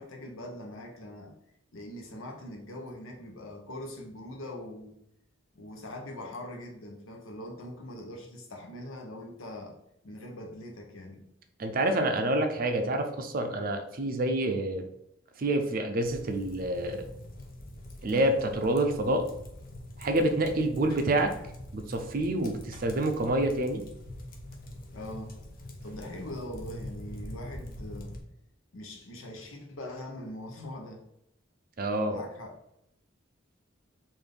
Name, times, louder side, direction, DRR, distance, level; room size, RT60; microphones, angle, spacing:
voice 1, 0.0-1.3 1.7-5.0 5.5-9.8 10.0-11.2 24.9-25.4 25.8-28.1 28.7-31.0 32.1-32.6, left 1 dB, 80° left, 2 dB, 0.8 m, -42 dB
voice 2, 11.6-14.9 15.4-17.0 18.0-19.3 20.0-21.3 21.7-23.8 31.8-32.2, right 1 dB, 45° right, 6 dB, 0.5 m, -27 dB
sound 1, 16.0-28.2, left 1 dB, 45° left, 0.7 m, -44 dB
3.8 x 2.6 x 3.3 m, 0.78 s
head